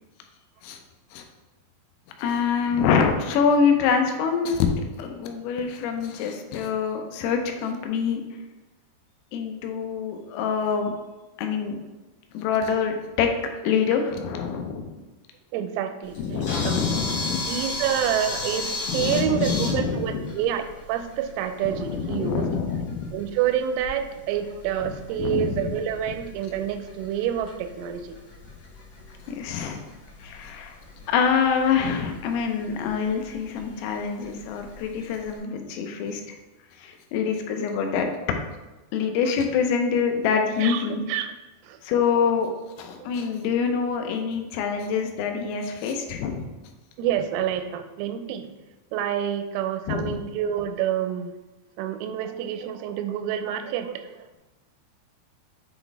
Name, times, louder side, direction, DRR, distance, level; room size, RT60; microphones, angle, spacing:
voice 1, 2.2-8.2 9.3-10.9 11.4-11.8 12.3-13.3 13.6-14.9 16.2-17.5 18.9-20.3 21.6-23.1 24.8-24.9 25.2-25.7 29.3-29.8 30.2-30.8 31.1-36.4 36.8-38.1 38.9-41.0 41.8-42.5 42.8-46.5 49.9-50.1, left 6 dB, 85° left, 4 dB, 3.4 m, -25 dB
voice 2, 15.5-16.8 17.5-22.5 23.1-28.2 39.0-39.3 40.6-41.3 41.6-41.8 43.0-43.1 47.0-48.5 48.9-51.3 51.8-54.4, right 10 dB, 85° right, 9 dB, 3.2 m, -28 dB
Camera, 16.0-35.4, left 3 dB, 55° left, 1.8 m, -37 dB
8.9 x 4.0 x 3.4 m, 1.1 s
omnidirectional pair, 5.9 m